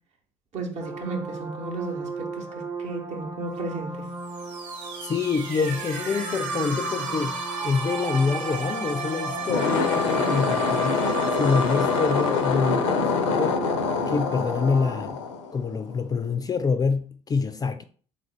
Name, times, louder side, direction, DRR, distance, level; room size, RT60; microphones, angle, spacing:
voice 1, 0.5-4.1, right 3 dB, 50° right, 0.9 m, -34 dB
sound 1, 0.8-15.0, right 3 dB, 20° right, 0.7 m, -37 dB
sound 2, 4.2-14.0, right 3 dB, 65° right, 0.9 m, -32 dB
voice 2, 5.0-13.7 14.1-15.2 15.5-17.8, left 5 dB, 25° left, 0.4 m, -26 dB
sound 3, 9.4-15.9, left 5 dB, 75° left, 0.5 m, -25 dB
3.8 x 2.4 x 3.3 m
figure-of-eight pair, 55°, 16 cm